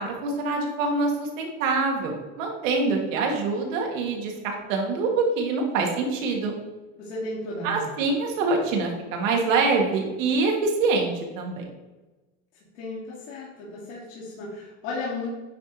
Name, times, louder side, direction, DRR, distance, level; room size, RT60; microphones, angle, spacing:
voice 1, 0.0-6.5 7.6-11.6, right 3 dB, 80° right, 1 dB, 1.6 m, -25 dB
voice 2, 7.0-7.9 12.7-15.3, left 2 dB, 75° left, -7 dB, 2.1 m, -34 dB
9.0 x 3.2 x 3.8 m, 1.1 s
supercardioid pair, 145°, 39 cm